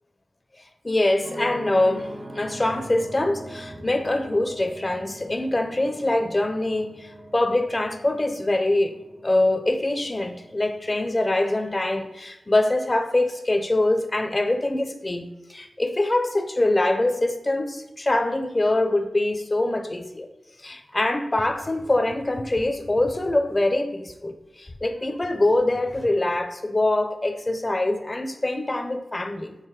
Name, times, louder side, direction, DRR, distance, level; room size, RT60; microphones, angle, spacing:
voice 1, 0.8-9.0 9.2-20.3 20.6-29.6, left 2 dB, 25° left, 0.6 m, -24 dB
sound 1, 1.2-11.2, equal, 55° right, 1.0 m, -41 dB
6.7 x 3.1 x 4.7 m
wide cardioid pair, 95°, 0 cm